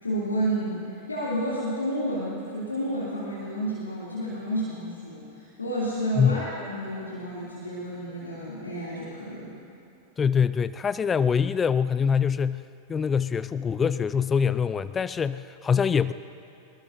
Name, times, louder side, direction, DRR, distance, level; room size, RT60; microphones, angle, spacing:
voice 1, 0.0-9.6, right 1 dB, 80° left, -8 dB, 2.9 m, -31 dB
voice 2, 10.2-12.6 12.9-16.1, left 6 dB, 20° left, 15 dB, 0.3 m, -24 dB
24.5 x 20.5 x 2.7 m, 2.7 s
figure-of-eight pair, 90°, 0 cm